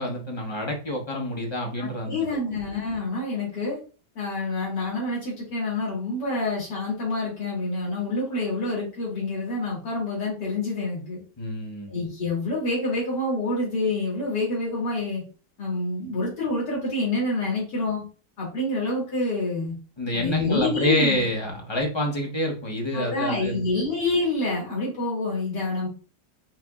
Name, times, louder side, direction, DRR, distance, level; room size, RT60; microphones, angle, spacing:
voice 1, 0.0-2.1 2.5-2.6 11.4-11.9 20.0-23.7, left 1 dB, 30° left, 1 dB, 0.5 m, -27 dB
voice 2, 1.8-3.8 4.2-11.2 11.9-15.2 15.6-18.0 18.4-19.7 20.1-21.2 22.9-25.9, left 2 dB, 80° left, -5 dB, 2.5 m, -27 dB
5.8 x 2.9 x 2.4 m, 0.37 s
omnidirectional pair, 1.8 m